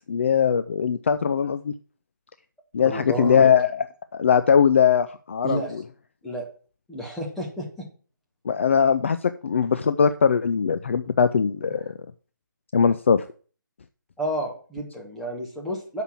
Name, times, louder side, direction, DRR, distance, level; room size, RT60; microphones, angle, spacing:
voice 1, 0.1-1.7 2.7-3.9 4.1-5.8 8.5-11.9 12.7-13.3, left 7 dB, 35° left, 11 dB, 0.4 m, -21 dB
voice 2, 2.8-3.5 5.4-5.7 6.2-6.4 6.9-7.9 14.2-16.0, equal, ahead, -4 dB, 1.4 m, -30 dB
7.1 x 5.8 x 7.2 m, 0.40 s
figure-of-eight pair, 165°, 11 cm